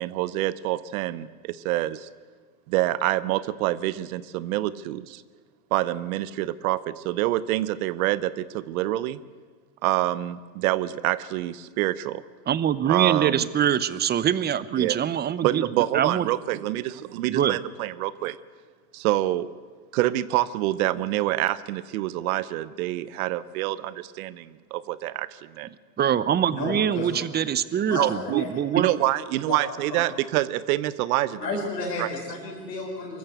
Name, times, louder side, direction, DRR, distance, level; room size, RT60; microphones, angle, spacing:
voice 1, 0.0-2.1 2.7-5.2 5.7-9.2 9.8-12.2 12.9-13.5 14.8-15.0 15.4-18.4 18.9-19.5 19.9-25.7 27.9-28.4 28.8-31.7 32.0-32.1, right 15 dB, 60° right, 17 dB, 0.9 m, -26 dB
voice 2, 12.5-15.7 15.9-16.3 17.3-17.6 26.0-28.9, right 9 dB, 20° right, 17 dB, 0.8 m, -24 dB
voice 3, 26.5-27.1 27.9-28.1 28.4-28.5 29.5-29.6 29.9-30.0 31.4-33.2, left 3 dB, 90° left, -4 dB, 5.0 m, -32 dB
24.0 x 14.0 x 8.0 m, 1.5 s
hypercardioid pair, 100°, 48 cm